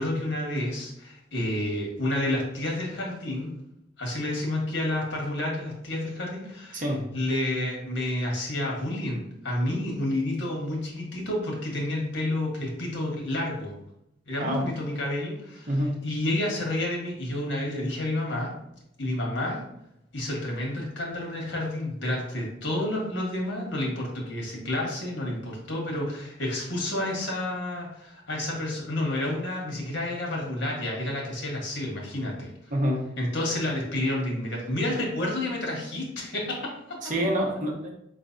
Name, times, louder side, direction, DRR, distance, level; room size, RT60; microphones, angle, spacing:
voice 1, 0.0-3.6 4.0-13.7 14.3-18.5 19.0-19.6 20.1-32.5 33.2-37.0, left 1 dB, 85° left, -1 dB, 1.4 m, -30 dB
voice 2, 32.7-33.0 37.0-37.9, equal, 45° right, -1 dB, 0.9 m, -26 dB
4.9 x 3.2 x 2.6 m, 0.81 s
head